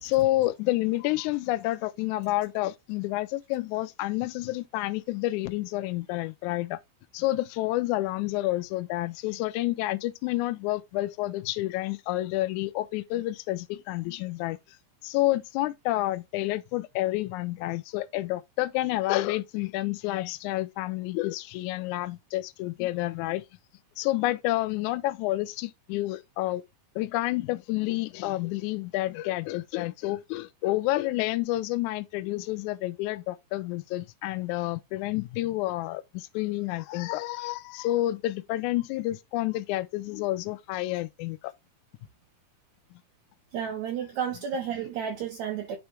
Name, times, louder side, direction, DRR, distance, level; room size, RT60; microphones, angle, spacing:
voice 1, 0.0-6.8 7.1-14.6 15.0-23.4 24.0-26.6 26.9-41.5 42.9-43.0, left 17 dB, 85° left, 1.7 m, -29 dB
voice 2, 43.5-45.8, right 8 dB, 75° right, 1.8 m, -32 dB
10.0 x 3.5 x 3.2 m
omnidirectional pair, 4.1 m